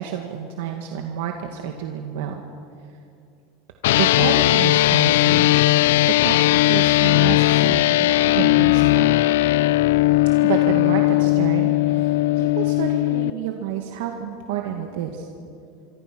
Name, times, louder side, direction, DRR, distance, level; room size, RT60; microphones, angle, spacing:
voice 1, 0.0-2.5 4.0-5.5 6.0-9.1 10.4-12.1 12.4-15.3, right 9 dB, 80° right, 3 dB, 2.0 m, -29 dB
sound 1, 3.8-13.3, left 17 dB, 80° left, 0.5 m, -18 dB
26.0 x 24.5 x 6.2 m, 2.4 s
supercardioid pair, 155°, 0 cm